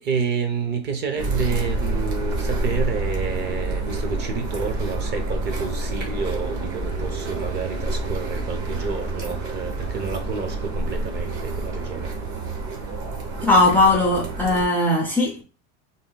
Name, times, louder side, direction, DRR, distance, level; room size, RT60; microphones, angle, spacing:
voice 1, 0.0-12.1, right 5 dB, 30° right, 0.8 m, -29 dB
sound 1, 1.2-14.6, right 2 dB, 50° right, 1.3 m, -28 dB
voice 2, 13.4-15.4, left 2 dB, 5° left, 0.4 m, -18 dB
3.8 x 2.2 x 3.9 m
supercardioid pair, 150°, 33 cm